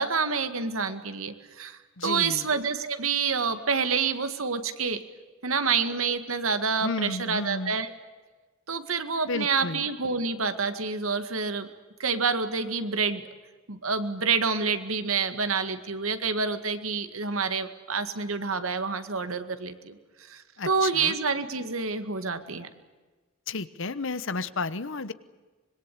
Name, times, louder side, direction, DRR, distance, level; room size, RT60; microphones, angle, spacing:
voice 1, 0.0-5.0 5.4-7.9 8.7-11.7 12.0-13.3 13.7-20.0 20.3-22.7, right 5 dB, 80° right, 9 dB, 2.0 m, -28 dB
voice 2, 2.0-2.5 6.8-7.8 9.3-9.8 20.6-21.2 23.5-25.1, left 3 dB, 65° left, 14 dB, 1.1 m, -32 dB
25.5 x 22.0 x 8.5 m, 1.3 s
head